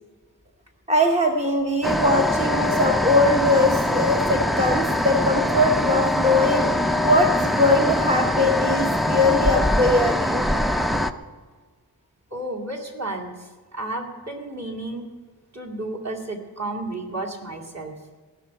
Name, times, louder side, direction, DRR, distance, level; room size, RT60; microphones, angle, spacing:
voice 1, 0.9-6.7 7.0-10.5, left 1 dB, 15° right, 2 dB, 0.9 m, -21 dB
sound 1, 1.8-11.1, left 1 dB, ahead, 0.4 m, -23 dB
voice 2, 12.3-15.1 15.5-17.9, right 2 dB, 40° right, 0 dB, 2.2 m, -32 dB
15.5 x 6.3 x 9.0 m, 1.4 s
wide cardioid pair, 85°, 40 cm